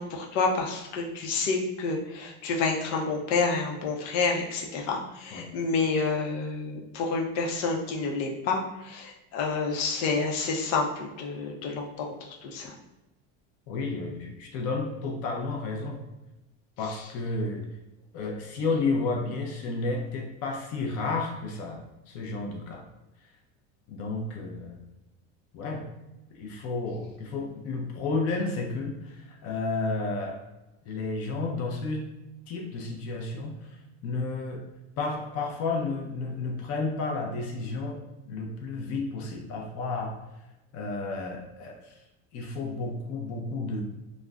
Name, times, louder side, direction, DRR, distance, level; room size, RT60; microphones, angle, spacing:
voice 1, 0.0-12.7, left 4 dB, 85° left, 0 dB, 0.6 m, -29 dB
voice 2, 13.7-16.0 16.8-17.6 18.1-22.8 23.9-24.8 25.5-25.9 26.3-30.4 30.9-32.1 32.5-34.6 35.0-38.0 38.3-40.2 40.7-42.0 42.3-43.8, left 3 dB, 45° left, 1 dB, 0.5 m, -32 dB
2.4 x 2.1 x 3.4 m, 1.0 s
cardioid pair, 145°, 35 cm